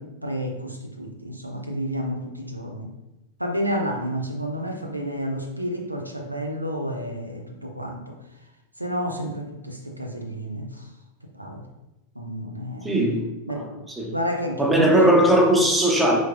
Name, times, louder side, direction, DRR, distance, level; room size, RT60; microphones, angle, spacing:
voice 1, 0.0-2.9 3.4-8.1 8.8-10.9 11.4-11.6 12.2-12.9 13.5-13.7 14.1-15.2, equal, 85° right, 3 dB, 0.5 m, -30 dB
voice 2, 12.8-13.3 13.5-13.7 14.0-14.1 14.6-16.2, right 1 dB, 5° right, 0 dB, 0.8 m, -19 dB
4.6 x 3.8 x 2.4 m, 0.98 s
figure-of-eight pair, 90°, 0 cm